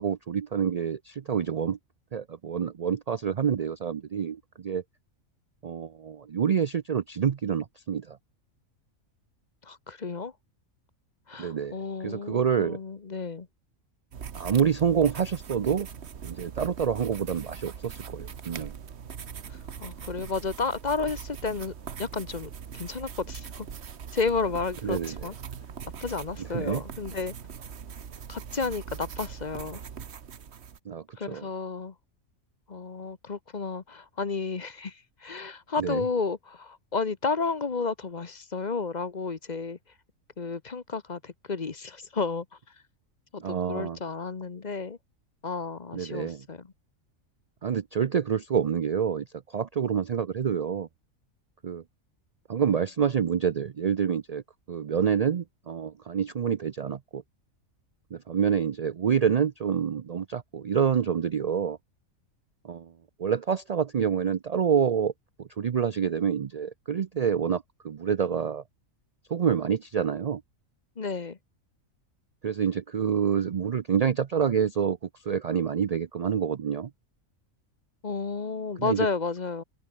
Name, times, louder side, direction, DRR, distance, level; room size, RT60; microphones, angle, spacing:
voice 1, 0.0-1.8 2.1-4.8 5.6-8.2 11.4-11.8 12.0-12.8 14.3-15.9 16.2-18.8 24.8-25.2 26.4-26.8 30.9-31.5 35.8-36.0 43.4-44.0 45.9-46.4 47.6-50.9 51.6-51.8 52.5-54.4 54.7-57.2 58.1-61.8 62.6-62.9 63.2-65.1 65.4-68.6 69.3-70.4 72.4-75.0 75.2-76.9 78.8-79.1, right 7 dB, 75° right, 0.3 m, -27 dB
voice 2, 9.6-10.3 11.3-13.5 19.5-23.7 24.1-25.3 26.0-27.3 28.3-29.8 31.2-31.9 32.7-39.8 40.4-42.5 43.3-45.0 45.4-46.7 71.0-71.4 78.0-79.6, left 4 dB, 35° left, 1.1 m, -32 dB
sound 1, 14.1-30.8, right 7 dB, 55° right, 1.3 m, -41 dB
open air
omnidirectional pair, 1.4 m